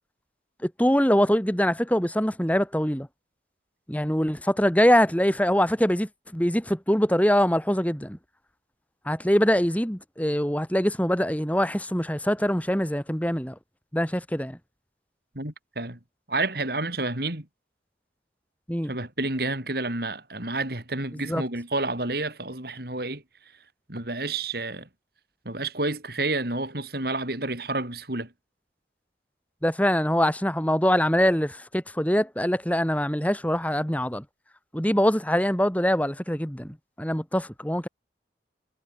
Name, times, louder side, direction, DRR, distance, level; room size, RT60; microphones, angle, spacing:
voice 1, 0.6-3.1 3.9-8.2 9.0-13.5 13.9-14.6 18.7-18.9 21.3-21.4 29.6-34.2 34.7-37.9, equal, 10° left, 3.5 m, -23 dB
voice 2, 15.4-16.0 16.3-17.5 18.8-23.2 23.9-24.9 25.5-28.3, right 2 dB, 55° right, 3.9 m, -30 dB
head